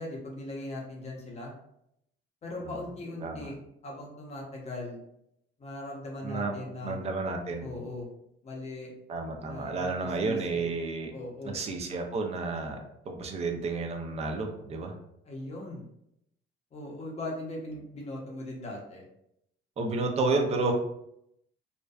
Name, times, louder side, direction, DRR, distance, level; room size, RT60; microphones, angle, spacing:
voice 1, 0.0-1.5 2.4-3.5 3.8-5.0 5.6-7.0 7.6-8.1 8.4-8.9 9.4-10.6 11.1-11.5 15.2-15.8 16.7-19.0, left 2 dB, 30° left, -2 dB, 0.6 m, -39 dB
voice 2, 6.2-6.5 6.8-7.7 9.1-11.1 11.4-12.8 13.1-14.9 19.8-20.7, right 3 dB, 30° right, 3 dB, 0.4 m, -31 dB
2.5 x 2.1 x 2.3 m, 0.77 s
cardioid pair, 130°, 20 cm